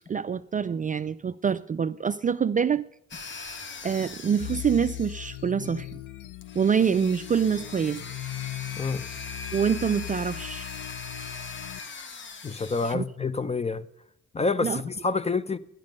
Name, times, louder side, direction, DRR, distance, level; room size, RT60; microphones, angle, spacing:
voice 1, 0.1-2.8 3.8-5.9 6.6-8.0 9.5-10.7 12.9-13.0 14.6-14.8, right 7 dB, 25° right, 0.4 m, -25 dB
sound 1, 3.1-5.5 6.4-13.0, left 4 dB, 40° left, 1.0 m, -41 dB
sound 2, 4.4-11.8, left 15 dB, 80° left, 0.7 m, -39 dB
voice 2, 12.4-13.9 14.3-15.6, left 4 dB, 20° left, 0.6 m, -27 dB
11.5 x 10.5 x 5.3 m
cardioid pair, 90°, 30 cm